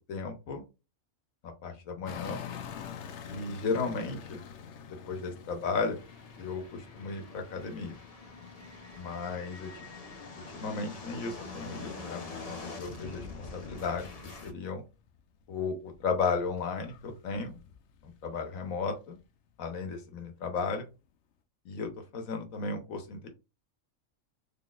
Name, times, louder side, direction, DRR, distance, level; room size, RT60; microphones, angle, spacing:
voice 1, 0.1-0.6 1.4-2.4 3.3-4.4 4.9-6.0 6.4-8.0 9.0-9.8 10.4-12.2 12.5-14.8 15.5-17.6 18.0-19.2 19.6-20.9 21.6-23.3, left 4 dB, 85° left, 5 dB, 1.4 m, -35 dB
sound 1, 2.0-14.0 14.4-19.2 19.8-19.9, left 8 dB, 65° left, 0.9 m, -48 dB
sound 2, 5.9-14.5, left 3 dB, 40° left, 0.6 m, -45 dB
4.0 x 3.3 x 2.4 m, 0.28 s
omnidirectional pair, 1.4 m